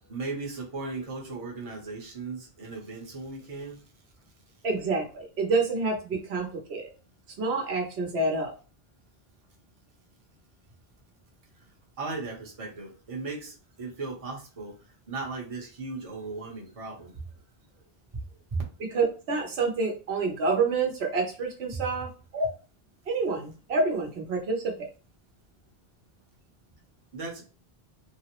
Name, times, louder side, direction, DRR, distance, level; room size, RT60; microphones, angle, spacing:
voice 1, 0.0-3.8 12.0-14.8 15.1-17.2 18.1-18.2 18.5-18.6 21.7-21.9 27.1-27.4, right 3 dB, 35° right, 0.9 m, -36 dB
voice 2, 4.6-6.9 7.4-8.5 18.9-22.5 23.1-24.9, right 3 dB, 85° right, 1.0 m, -28 dB
3.2 x 2.0 x 2.9 m
omnidirectional pair, 1.1 m